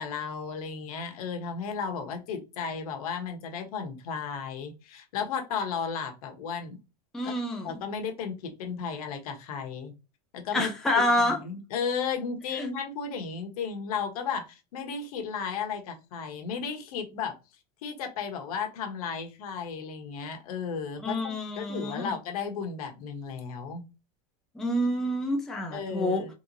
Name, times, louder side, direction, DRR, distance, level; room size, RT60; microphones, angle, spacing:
voice 1, 0.0-6.8 7.2-7.3 7.6-9.9 10.3-10.7 11.2-17.4 17.8-23.9 25.7-26.3, left 6 dB, 70° left, 1.1 m, -34 dB
voice 2, 7.1-7.8 10.5-11.4 12.5-12.7 21.0-22.1 24.5-26.3, left 1 dB, ahead, 0.4 m, -28 dB
3.5 x 3.0 x 2.6 m
supercardioid pair, 170°, 20 cm